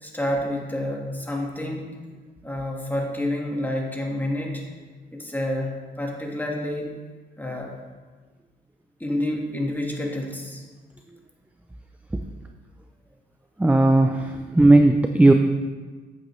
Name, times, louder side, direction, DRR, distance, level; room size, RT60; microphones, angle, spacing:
voice 1, 0.0-1.9 2.4-4.6 5.1-6.9 7.4-7.8 9.0-10.6, left 1 dB, 10° left, 0 dB, 1.6 m, -29 dB
voice 2, 13.6-15.3, right 2 dB, 5° right, 6 dB, 0.4 m, -16 dB
9.1 x 7.8 x 3.2 m, 1.4 s
cardioid pair, 90°, 20 cm